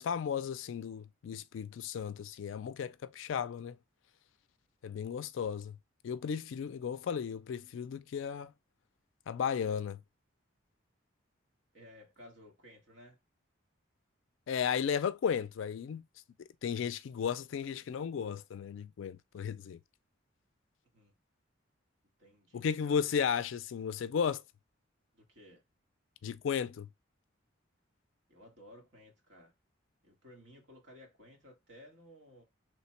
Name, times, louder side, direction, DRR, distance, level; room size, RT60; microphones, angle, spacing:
voice 1, 0.0-3.8 4.8-5.8 6.0-8.5 9.3-10.0 14.5-16.0 16.6-19.8 22.5-24.4 26.2-26.9, left 7 dB, 70° left, 0.3 m, -34 dB
voice 2, 11.7-13.2 20.9-21.1 22.2-23.0 25.1-25.6 28.3-29.5 30.0-32.4, left 1 dB, 60° right, 1.4 m, -56 dB
3.2 x 2.1 x 4.2 m
head